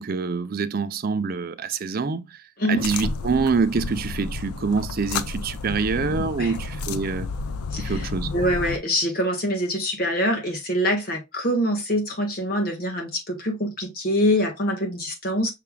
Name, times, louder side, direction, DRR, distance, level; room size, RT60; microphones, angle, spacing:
voice 1, 0.0-2.4 2.7-7.3 7.8-8.3, right 4 dB, 40° right, 0.4 m, -26 dB
sound 1, 2.8-8.8, left 4 dB, 90° left, 0.5 m, -31 dB
voice 2, 7.7-15.5, equal, 40° left, 1.5 m, -25 dB
5.7 x 3.6 x 2.3 m
head